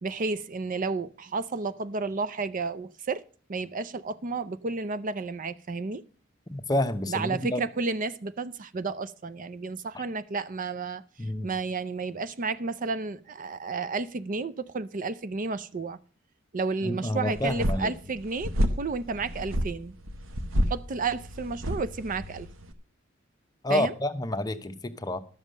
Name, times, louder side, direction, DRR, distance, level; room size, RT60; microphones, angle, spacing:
voice 1, 0.0-3.2 3.5-6.0 7.1-16.0 16.5-19.9 20.7-22.5 23.7-24.0, right 4 dB, 40° right, 0.5 m, -32 dB
voice 2, 6.5-7.6 9.9-10.0 11.2-11.5 16.8-17.9 23.6-25.2, left 1 dB, 20° left, 0.9 m, -29 dB
sound 1, 17.3-22.7, equal, 80° right, 1.1 m, -30 dB
12.0 x 7.2 x 6.4 m
head